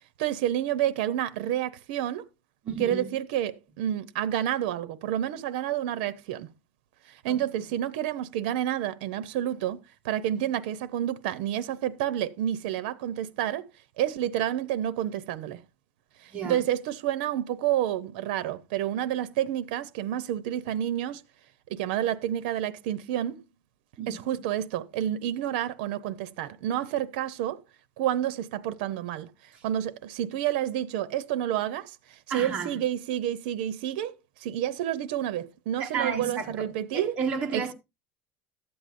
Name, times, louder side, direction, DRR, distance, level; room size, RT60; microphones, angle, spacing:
voice 1, 0.2-2.2 2.8-6.5 7.1-9.8 10.0-13.6 14.0-15.6 16.2-21.2 21.7-23.4 24.1-27.6 28.0-29.3 29.6-34.1 34.4-37.2 37.5-37.7, right 11 dB, 80° right, 0.7 m, -29 dB
voice 2, 2.6-3.1 7.3-7.4 16.3-16.6 24.0-24.2 32.3-32.8 35.8-37.7, right 6 dB, 25° right, 1.3 m, -32 dB
13.0 x 7.8 x 2.5 m
cardioid pair, 180°, 5 cm